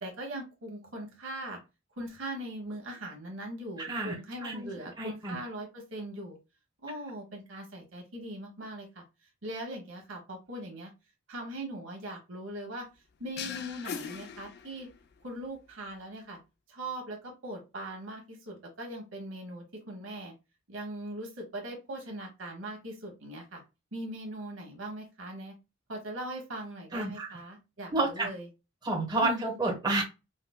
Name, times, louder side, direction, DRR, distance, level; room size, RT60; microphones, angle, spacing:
voice 1, 0.0-1.6 2.0-6.4 6.8-9.0 9.4-10.9 11.3-12.9 13.2-14.9 15.2-16.4 16.7-20.3 20.7-23.6 23.9-25.5 25.9-28.5 29.2-29.6, right 1 dB, 70° right, 1 dB, 1.1 m, -40 dB
voice 2, 3.8-4.1 4.4-4.7 5.0-5.4 26.9-27.3 27.9-28.3 28.8-30.0, right 2 dB, 20° right, -3 dB, 1.2 m, -30 dB
sound 1, 13.4-15.1, left 7 dB, 50° left, 0.4 m, -40 dB
4.8 x 2.1 x 2.2 m, 0.26 s
head